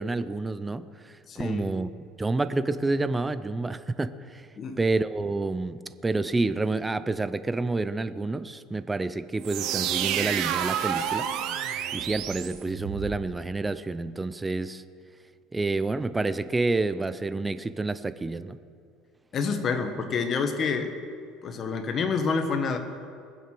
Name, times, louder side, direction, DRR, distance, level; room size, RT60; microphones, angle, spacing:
voice 1, 0.0-1.9 2.2-14.8 15.5-18.6, right 3 dB, 10° right, 13 dB, 0.5 m, -29 dB
voice 2, 1.3-1.7 4.6-4.8 19.3-21.0 21.4-22.8, left 5 dB, 35° left, 7 dB, 1.4 m, -28 dB
sound 1, 9.4-13.2, right 10 dB, 60° right, 1.0 m, -29 dB
21.0 x 7.8 x 6.1 m, 2.3 s
cardioid pair, 145°, 0 cm